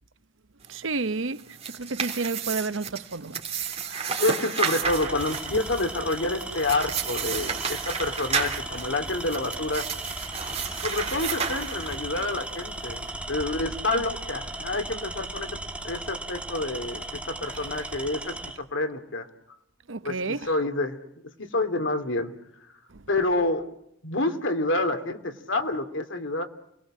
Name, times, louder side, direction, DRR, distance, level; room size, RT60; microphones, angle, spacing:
voice 1, 0.7-3.4 10.7-11.1 19.9-20.5 22.9-23.0, right 3 dB, 80° right, 0.9 m, -31 dB
sound 1, 1.3-12.2, right 6 dB, 35° right, 3.4 m, -32 dB
Tools, 3.6-3.9 4.8-18.6, right 1 dB, 5° right, 2.2 m, -36 dB
voice 2, 3.8-9.9 10.7-15.6 15.8-19.3 20.0-21.0 21.4-22.3 22.6-22.7 23.1-23.7 24.0-26.4, left 2 dB, 75° left, 2.6 m, -28 dB
29.5 x 20.5 x 7.5 m
head